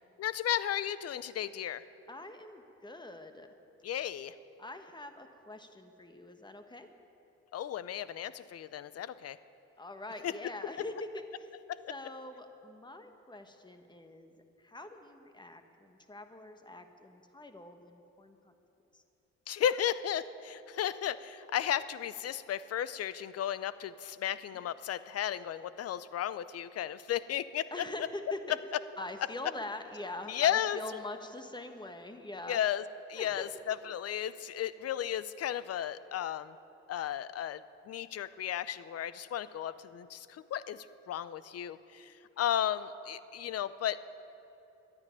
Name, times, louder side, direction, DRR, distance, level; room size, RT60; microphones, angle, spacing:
voice 1, 0.2-1.8 3.8-4.3 7.5-9.4 10.2-10.3 11.7-11.8 19.5-27.7 30.3-30.8 32.5-32.8 33.1-36.6 36.9-44.0, left 10 dB, 55° left, 16 dB, 0.6 m, -34 dB
voice 2, 2.1-3.5 4.6-6.9 9.8-11.5 11.9-18.5 18.9-19.0 27.7-28.6 29.0-32.6 33.2-33.5, left 2 dB, 15° left, 7 dB, 1.2 m, -44 dB
11.5 x 9.6 x 9.8 m, 3.0 s
cardioid pair, 90°, 30 cm